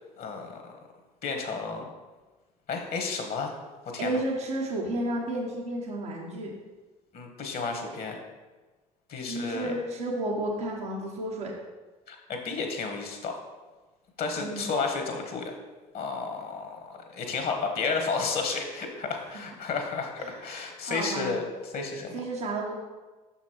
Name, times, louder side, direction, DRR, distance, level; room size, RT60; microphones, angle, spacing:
voice 1, 0.2-0.7 1.2-1.9 2.7-3.6 3.8-4.2 7.1-8.2 9.1-9.7 12.1-13.3 14.2-15.5 15.9-21.4 21.7-22.1, left 4 dB, 60° left, 3 dB, 1.5 m, -32 dB
voice 2, 4.0-6.5 9.3-11.5 14.3-14.7 20.2-20.4 20.8-21.4 22.1-22.7, right 1 dB, 85° right, -6 dB, 1.0 m, -32 dB
6.1 x 5.8 x 4.5 m, 1.2 s
hypercardioid pair, 60°, 18 cm